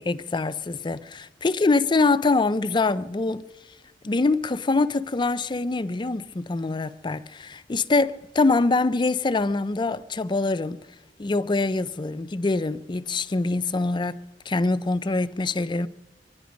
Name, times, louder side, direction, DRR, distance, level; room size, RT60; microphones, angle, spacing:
voice 1, 0.0-3.5 4.0-10.8 11.2-15.9, left 3 dB, 25° left, 0.4 m, -24 dB
24.5 x 10.0 x 5.1 m
head